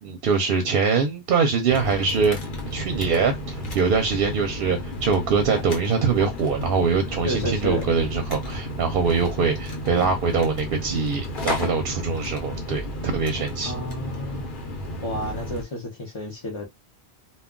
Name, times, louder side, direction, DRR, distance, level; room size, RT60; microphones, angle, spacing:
voice 1, 0.0-2.4 2.7-13.7, right 5 dB, 65° right, 0.7 m, -23 dB
sound 1, 1.7-15.6, left 1 dB, 55° left, 0.9 m, -32 dB
voice 2, 7.2-7.9 13.6-14.5 15.0-16.7, equal, 35° left, 0.6 m, -31 dB
2.3 x 2.2 x 3.6 m
omnidirectional pair, 1.1 m